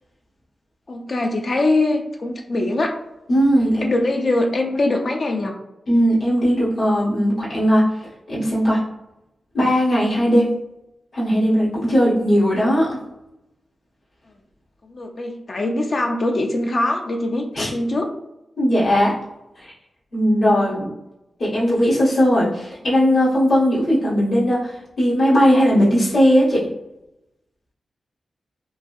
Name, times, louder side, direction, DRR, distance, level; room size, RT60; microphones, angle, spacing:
voice 1, 0.9-2.9 3.8-5.5 14.8-18.1 20.5-20.7, left 2 dB, 55° left, 2 dB, 0.4 m, -22 dB
voice 2, 3.3-3.8 5.9-7.8 8.3-8.8 9.5-10.5 11.1-13.0 17.5-17.7 18.6-19.1 20.1-20.9 21.4-26.7, equal, 80° left, -12 dB, 1.4 m, -18 dB
3.8 x 2.5 x 2.5 m, 0.88 s
cardioid pair, 60°, 0 cm